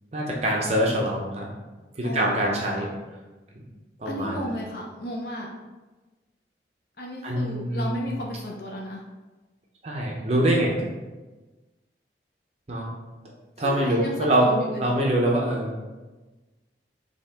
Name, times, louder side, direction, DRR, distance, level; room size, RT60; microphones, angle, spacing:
voice 1, 0.1-1.6 1.9-2.9 3.6-3.7 4.0-4.5 7.2-8.2 9.8-10.7 12.7-12.9 13.6-14.5 14.8-15.7, right 1 dB, 35° right, -2 dB, 0.6 m, -24 dB
voice 2, 2.0-2.9 4.0-5.6 7.0-9.0 13.6-14.1 14.4-15.0, left 1 dB, 55° left, -1 dB, 0.5 m, -34 dB
5.4 x 2.8 x 3.4 m, 1.2 s
head